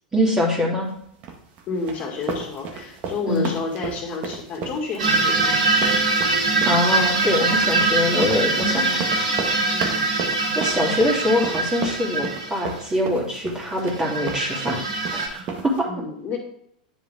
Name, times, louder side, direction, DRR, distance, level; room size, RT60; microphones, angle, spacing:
voice 1, 0.1-0.9 3.3-3.5 6.6-9.0 10.5-14.8 15.1-15.9, left 1 dB, 15° right, -2 dB, 3.2 m, -23 dB
sound 1, 1.2-15.8, right 5 dB, 40° right, 1.8 m, -33 dB
voice 2, 1.7-6.0 9.7-10.0 15.9-16.4, left 4 dB, 35° left, 1 dB, 2.3 m, -30 dB
sound 2, 5.0-12.8 13.9-15.3, right 3 dB, 75° right, 3.8 m, -23 dB
10.0 x 6.9 x 3.6 m, 0.72 s
figure-of-eight pair, 95°, 4 cm